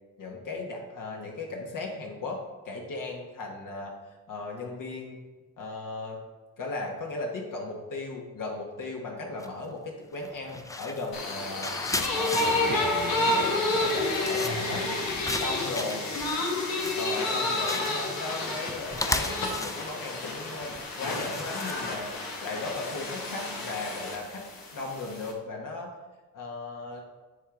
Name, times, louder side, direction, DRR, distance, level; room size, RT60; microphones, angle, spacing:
voice 1, 0.2-2.4 2.6-3.9 4.3-5.2 5.6-6.2 6.6-11.7 12.1-14.8 15.4-16.0 16.9-24.4 24.7-25.9 26.3-27.0, left 3 dB, 65° left, 0 dB, 1.2 m, -36 dB
sound 1, 9.4-9.7 10.1-22.1, left 2 dB, 10° left, 0.4 m, -36 dB
sound 2, 11.1-25.3, left 2 dB, 85° left, 1.2 m, -30 dB
9.0 x 3.4 x 3.7 m, 1.2 s
cardioid pair, 75°, 34 cm